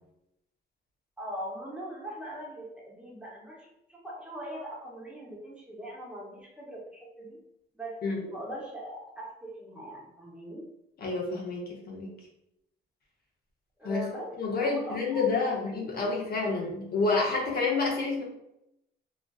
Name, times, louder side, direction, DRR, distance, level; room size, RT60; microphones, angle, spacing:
voice 1, 1.2-7.4 7.7-10.7 13.8-16.1, right 1 dB, 5° right, -4 dB, 0.8 m, -41 dB
voice 2, 11.0-12.1 13.8-14.1 14.4-18.2, left 3 dB, 50° left, -2 dB, 0.7 m, -29 dB
2.4 x 2.4 x 2.3 m, 0.82 s
cardioid pair, 90°, 20 cm